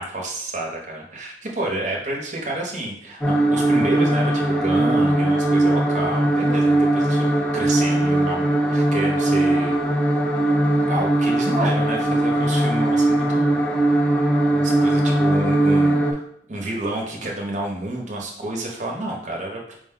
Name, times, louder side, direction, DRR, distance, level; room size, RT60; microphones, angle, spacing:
voice 1, 0.0-9.8 10.9-13.6 14.5-16.2 16.5-19.7, right 1 dB, 40° right, -1 dB, 0.8 m, -29 dB
sound 1, 3.2-16.1, right 1 dB, 5° left, 0.3 m, -19 dB
4.9 x 2.2 x 3.7 m, 0.68 s
head